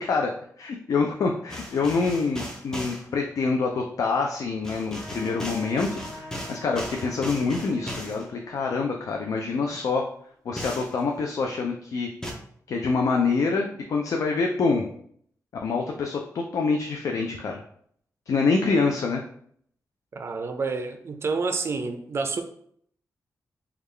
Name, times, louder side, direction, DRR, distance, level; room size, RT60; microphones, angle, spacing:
voice 1, 0.0-10.1 10.5-12.1 12.7-14.8 15.6-17.6 18.3-19.2, left 4 dB, 65° left, 1 dB, 0.4 m, -26 dB
sound 1, 1.5-3.0 4.6-8.2 10.6-11.0 12.2-12.3, equal, 10° left, 0.6 m, -36 dB
Trumpet, 5.0-10.0, left 1 dB, 30° left, 1.0 m, -46 dB
Acoustic guitar, 5.7-9.0, left 4 dB, 90° left, 0.8 m, -51 dB
voice 2, 20.1-22.4, right 4 dB, 45° right, 6 dB, 0.4 m, -29 dB
3.5 x 2.3 x 3.2 m, 0.64 s
wide cardioid pair, 110°, 6 cm